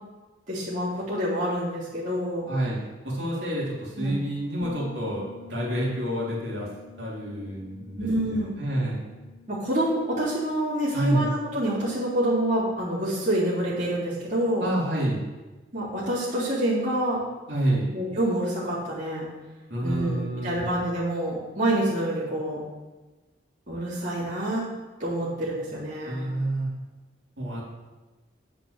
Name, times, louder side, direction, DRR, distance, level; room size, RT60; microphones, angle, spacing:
voice 1, 0.5-2.5 4.0-4.2 8.0-8.5 9.5-14.7 15.7-17.2 17.9-19.2 19.8-22.6 23.7-24.6 25.0-26.3, right 1 dB, 45° right, -10 dB, 3.8 m, -27 dB
voice 2, 2.5-2.8 3.0-6.7 7.0-9.0 10.9-11.3 14.6-15.2 17.5-17.9 19.7-20.7 26.0-26.7 27.4-27.6, right 1 dB, 70° right, -5 dB, 3.4 m, -28 dB
Bass guitar, 4.6-14.3, left 5 dB, 70° left, 2.4 m, -49 dB
9.1 x 6.0 x 6.8 m, 1.2 s
head